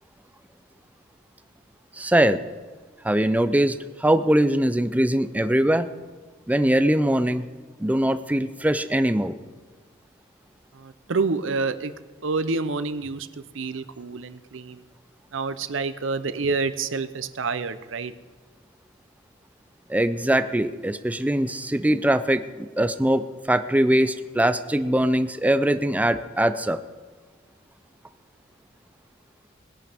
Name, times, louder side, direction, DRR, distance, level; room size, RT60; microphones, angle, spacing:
voice 1, 2.0-2.4 3.0-5.9 6.5-7.4 7.8-9.3 19.9-26.8, right 1 dB, 10° right, 12 dB, 0.5 m, -22 dB
voice 2, 10.8-11.9 12.2-13.3 13.5-14.8 15.3-18.1, right 4 dB, 70° right, 12 dB, 0.7 m, -28 dB
20.5 x 11.0 x 3.5 m, 1.4 s
head